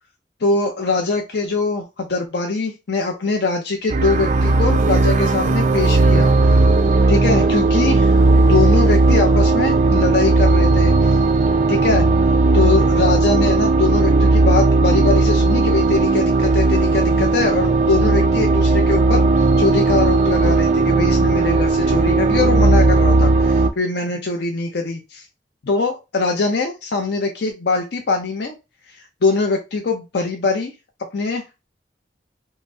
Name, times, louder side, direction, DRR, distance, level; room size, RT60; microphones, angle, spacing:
voice 1, 0.4-6.6 7.1-8.2 8.5-11.2 11.7-12.0 12.5-25.2 25.6-28.5 28.9-30.7 31.1-31.7, left 3 dB, 65° left, 3 dB, 0.6 m, -22 dB
sound 1, 3.9-23.7, right 3 dB, 45° right, 0.4 m, -16 dB
5.6 x 2.1 x 2.6 m, 0.26 s
head